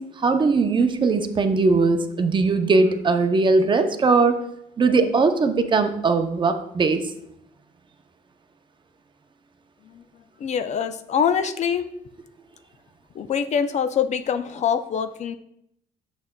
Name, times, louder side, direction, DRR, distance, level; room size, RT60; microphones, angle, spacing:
voice 1, 0.0-4.4 4.8-7.1, right 4 dB, 30° right, 7 dB, 0.6 m, -20 dB
voice 2, 10.4-11.9 13.1-15.4, left 7 dB, 45° left, 11 dB, 0.4 m, -24 dB
6.9 x 6.4 x 2.2 m, 0.75 s
cardioid pair, 110°, 17 cm